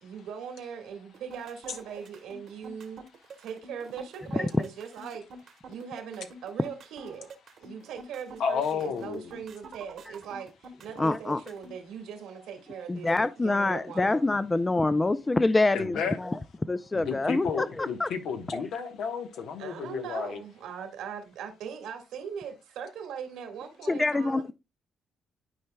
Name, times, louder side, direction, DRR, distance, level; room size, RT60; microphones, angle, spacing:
voice 1, 0.0-3.0 3.4-5.2 5.7-7.3 7.6-13.1 13.4-14.2 19.6-24.5, right 7 dB, 85° right, 1.8 m, -40 dB
sound 1, 1.1-11.7, right 3 dB, 65° right, 1.3 m, -47 dB
voice 2, 8.4-9.3 15.7-16.2 16.9-20.4, left 6 dB, 75° left, 1.1 m, -32 dB
voice 3, 11.0-11.4 12.9-16.4 16.7-18.1 18.5-18.6 23.9-24.5, left 2 dB, 20° left, 0.4 m, -26 dB
11.5 x 4.5 x 2.2 m
cardioid pair, 90°, 0 cm